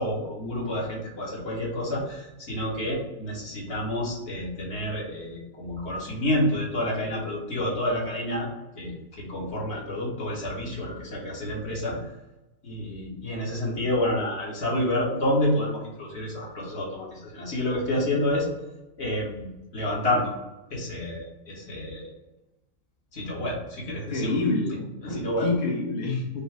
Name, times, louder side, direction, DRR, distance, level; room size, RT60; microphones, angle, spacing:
voice 1, 0.0-8.5 8.7-12.1 12.6-18.5 19.0-20.3 20.7-22.1 23.1-24.4 24.7-25.5, left 1 dB, 55° left, -4 dB, 1.5 m, -29 dB
voice 2, 24.1-26.4, left 2 dB, 35° left, -2 dB, 0.8 m, -27 dB
5.3 x 2.0 x 4.6 m, 0.99 s
omnidirectional pair, 1.4 m